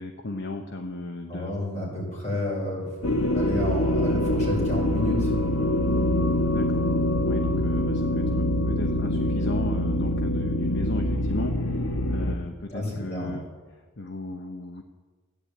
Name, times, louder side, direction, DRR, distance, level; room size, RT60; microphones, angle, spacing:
voice 1, 0.0-1.6 6.5-6.9 7.2-13.4 13.7-14.8, left 2 dB, 55° left, 5 dB, 1.0 m, -36 dB
voice 2, 1.3-2.9 3.3-5.3 12.7-13.3, left 1 dB, 35° left, -2 dB, 5.5 m, -30 dB
sound 1, 3.0-12.3, left 1 dB, 85° left, 1.2 m, -24 dB
15.0 x 10.5 x 8.6 m, 1.4 s
head